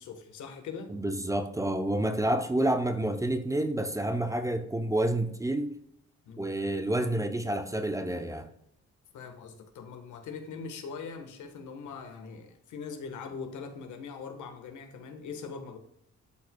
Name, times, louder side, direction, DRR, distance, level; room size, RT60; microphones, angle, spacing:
voice 1, 0.0-0.9 6.3-6.5 7.0-7.3 9.1-15.8, left 5 dB, 85° left, 1.3 m, -41 dB
voice 2, 0.9-5.8 6.4-8.5, right 1 dB, 10° right, 0.6 m, -29 dB
12.0 x 4.7 x 2.2 m
cardioid pair, 110°, 29 cm